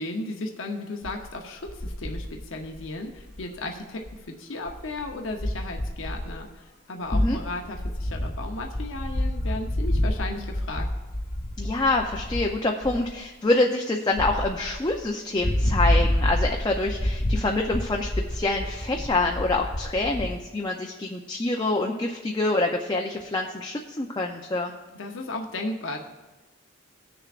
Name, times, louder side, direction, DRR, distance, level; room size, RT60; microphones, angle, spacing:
voice 1, 0.0-10.9 24.9-26.0, left 2 dB, 75° left, 2 dB, 0.8 m, -35 dB
sound 1, 1.0-1.3 1.7-3.8 4.0-4.2 4.7-6.5 7.0-12.6 12.8-13.2 14.1-15.0 15.4-20.3, left 1 dB, 55° left, 1.1 m, -28 dB
voice 2, 11.6-24.7, left 2 dB, 20° left, 1 dB, 0.5 m, -26 dB
18.0 x 6.7 x 2.5 m, 1.1 s
head